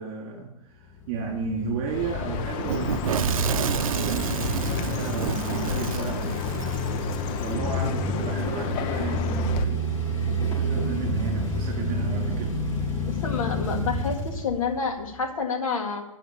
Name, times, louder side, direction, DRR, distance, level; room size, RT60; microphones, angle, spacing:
voice 1, 0.0-6.5 6.9-9.9 10.6-12.6, right 5 dB, 35° right, 0 dB, 3.4 m, -33 dB
sound 1, 0.8-15.2, right 1 dB, 55° left, 3.7 m, -30 dB
Chirp tweet, 1.9-9.7, left 8 dB, 30° left, 0.6 m, -32 dB
Fire / Explosion, 2.7-7.5, right 8 dB, 75° right, 0.6 m, -29 dB
voice 2, 13.0-16.0, left 5 dB, 75° left, 3 dB, 2.0 m, -29 dB
10.0 x 5.7 x 8.6 m, 0.88 s
hypercardioid pair, 140°, 18 cm